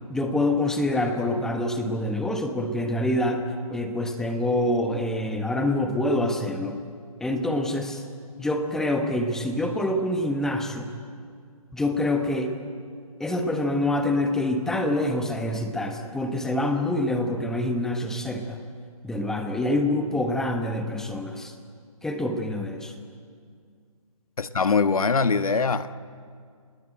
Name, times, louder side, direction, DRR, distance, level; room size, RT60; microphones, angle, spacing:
voice 1, 0.1-3.4 3.7-6.8 7.2-8.0 8.4-10.9 11.7-12.5 13.2-18.6 19.0-21.5 22.0-22.9, left 1 dB, 5° left, 5 dB, 1.1 m, -26 dB
voice 2, 24.4-26.0, left 4 dB, 75° left, 11 dB, 1.4 m, -22 dB
27.5 x 20.0 x 8.8 m, 2.1 s
hypercardioid pair, 155°, 18 cm